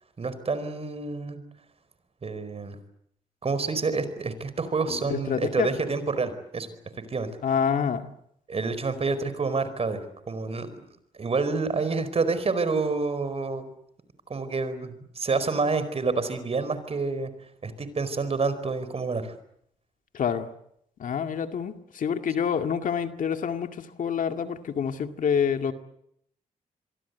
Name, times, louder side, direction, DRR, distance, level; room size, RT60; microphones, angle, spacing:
voice 1, 0.2-1.4 2.2-2.8 3.4-6.7 7.1-7.3 8.5-10.0 10.3-10.7 11.2-13.6 14.3-17.3 17.6-19.3, right 4 dB, 45° right, 13 dB, 4.5 m, -28 dB
voice 2, 4.9-5.7 7.4-8.1 20.1-20.5 21.0-25.7, left 7 dB, 65° left, 7 dB, 2.1 m, -27 dB
26.5 x 23.0 x 8.1 m, 0.72 s
cardioid pair, 65°, 14 cm